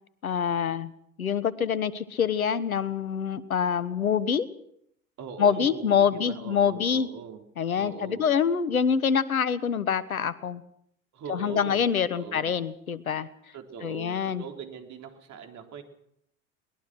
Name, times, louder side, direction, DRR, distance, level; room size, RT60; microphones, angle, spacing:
voice 1, 0.2-0.9 1.2-4.5 5.4-7.1 7.6-10.6 11.3-13.3 13.8-14.4, left 7 dB, 90° left, 17 dB, 1.3 m, -25 dB
voice 2, 5.2-7.4 7.8-8.3 11.1-11.9 12.1-12.5 13.5-15.8, right 7 dB, 40° right, 4 dB, 4.0 m, -40 dB
23.0 x 20.5 x 6.3 m, 0.71 s
hypercardioid pair, 75°, 41 cm